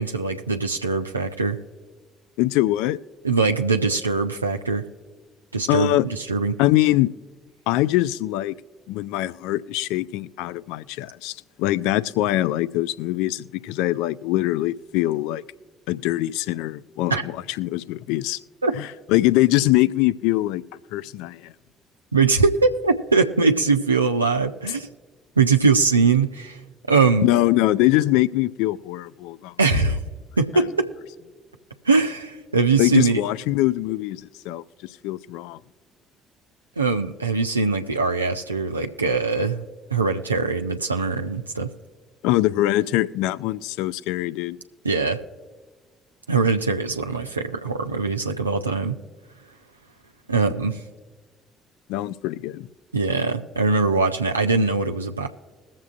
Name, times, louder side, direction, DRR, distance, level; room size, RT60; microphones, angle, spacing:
voice 1, 0.0-1.6 3.2-4.8 5.5-6.5 17.1-17.3 18.6-18.7 22.1-24.9 25.4-26.6 26.9-27.3 29.6-30.0 30.4-30.9 31.9-33.2 36.8-39.6 39.9-41.7 44.8-45.2 46.3-49.0 50.3-50.8 52.9-55.3, right 4 dB, 85° right, 3 dB, 0.4 m, -21 dB
voice 2, 2.4-3.0 5.7-6.1 6.6-7.1 7.7-8.6 8.9-15.4 15.9-18.4 18.8-20.6 20.9-21.5 27.2-29.5 32.8-34.6 35.0-35.6 42.2-44.6 51.9-52.7, left 16 dB, 65° left, 16 dB, 0.3 m, -23 dB
21.5 x 7.3 x 2.5 m, 1.4 s
figure-of-eight pair, 50°, 0 cm